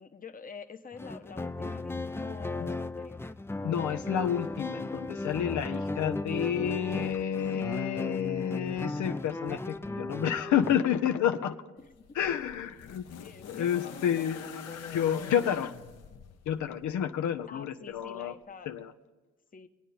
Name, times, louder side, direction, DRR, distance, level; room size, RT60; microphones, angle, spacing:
voice 1, 0.0-3.2 7.5-7.8 11.8-12.1 13.2-15.7 17.5-18.7 19.5-19.7, left 5 dB, 30° left, 7 dB, 1.0 m, -47 dB
sound 1, 0.9-10.8, left 2 dB, 10° left, 0.5 m, -36 dB
voice 2, 3.6-11.6 12.1-13.0 13.5-14.4 14.9-15.7 16.5-18.3 18.7-18.9, left 9 dB, 75° left, 7 dB, 0.8 m, -30 dB
sound 2, 11.8-17.0 18.1-18.2, left 7 dB, 55° left, 1.0 m, -45 dB
23.5 x 9.0 x 4.2 m, 1.2 s
cardioid pair, 90°, 30 cm